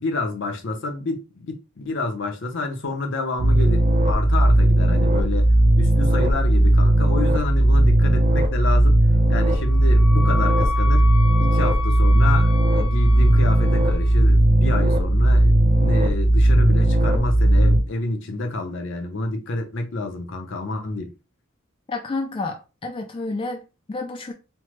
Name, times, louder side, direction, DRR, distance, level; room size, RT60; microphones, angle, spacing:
voice 1, 0.0-9.0 9.3-11.1 11.4-21.1, left 2 dB, 65° left, 0.7 m, -28 dB
sound 1, 3.4-17.8, right 1 dB, 30° right, 0.5 m, -17 dB
Wind instrument woodwind instrument, 9.4-14.2, left 6 dB, 5° left, 0.7 m, -32 dB
voice 2, 21.9-24.3, left 3 dB, 25° left, 0.3 m, -30 dB
3.3 x 2.1 x 3.0 m
head